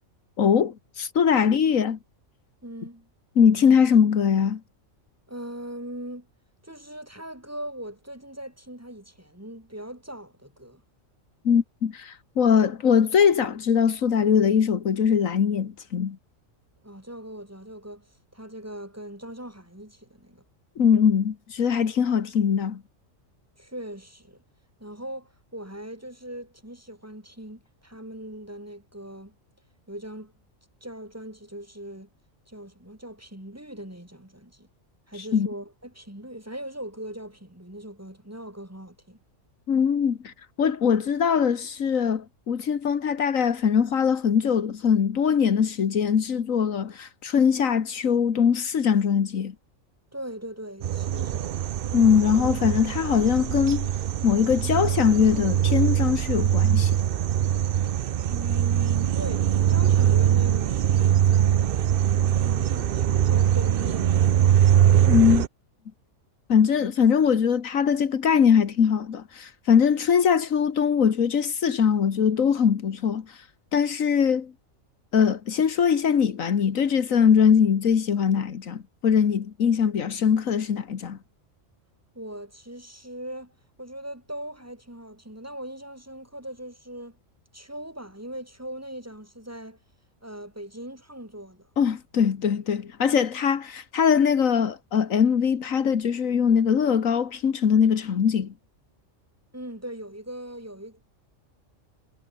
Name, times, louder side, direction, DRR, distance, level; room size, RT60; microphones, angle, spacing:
voice 1, 0.4-2.0 3.4-4.6 11.5-16.2 20.8-22.8 35.3-35.5 39.7-49.5 51.9-53.9 54.2-57.0 65.1-65.5 66.5-73.4 73.7-74.5 75.1-81.2 91.8-98.5, left 7 dB, 85° left, 1.8 m, -22 dB
voice 2, 2.6-3.1 5.3-6.3 6.6-10.8 16.8-20.4 23.6-24.4 24.8-29.4 29.9-30.3 30.8-32.1 32.5-34.7 35.1-39.2 50.1-51.6 58.3-64.3 82.1-83.5 83.8-87.2 87.5-89.8 90.2-91.7 99.5-101.0, right 1 dB, 10° right, 4.0 m, -40 dB
sound 1, 50.8-65.5, right 10 dB, 55° right, 0.7 m, -22 dB
omnidirectional pair, 1.4 m